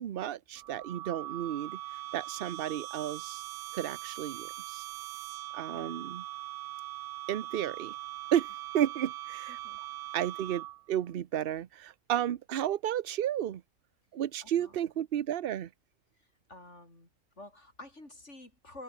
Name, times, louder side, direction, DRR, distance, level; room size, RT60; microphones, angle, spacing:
voice 1, 0.0-1.8 2.1-3.4 3.7-4.8 5.5-6.2 7.3-7.9 8.3-8.5 8.7-9.6 10.1-13.6 14.1-15.7, right 11 dB, 50° right, 0.7 m, -32 dB
sound 1, 0.6-10.9, right 15 dB, 85° right, 1.1 m, -41 dB
voice 2, 5.7-6.1 9.5-9.8 14.4-15.1 16.5-17.1 17.4-18.8, left 2 dB, 50° left, 6.9 m, -50 dB
omnidirectional pair, 1.6 m